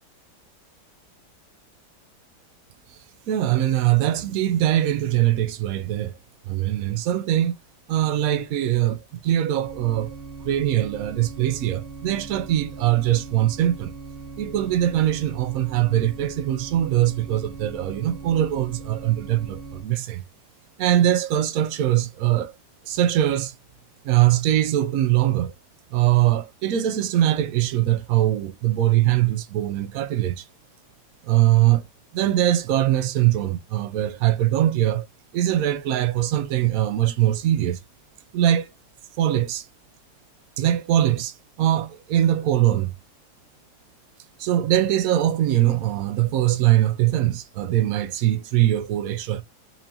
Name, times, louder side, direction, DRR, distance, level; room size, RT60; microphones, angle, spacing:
voice 1, 3.3-6.1 6.5-7.5 7.9-13.9 14.4-20.2 20.8-22.5 22.8-23.5 24.0-25.5 25.9-30.5 31.2-31.8 32.1-35.1 35.3-37.8 38.3-38.7 39.2-39.7 40.6-42.9 44.4-49.4, right 13 dB, 85° right, 0.7 m, -22 dB
sound 1, 9.6-19.8, right 4 dB, 45° right, 0.8 m, -39 dB
4.4 x 2.6 x 2.8 m
omnidirectional pair, 2.1 m